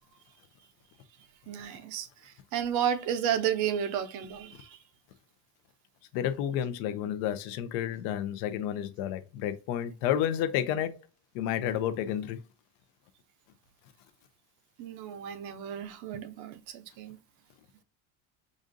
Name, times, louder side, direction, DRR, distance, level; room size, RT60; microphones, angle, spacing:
voice 1, 1.5-4.8 14.8-17.2, right 9 dB, 50° right, 0.6 m, -32 dB
voice 2, 6.1-11.0 11.3-12.4, left 10 dB, 65° left, 0.6 m, -30 dB
5.1 x 2.5 x 2.5 m
cardioid pair, 170°, 37 cm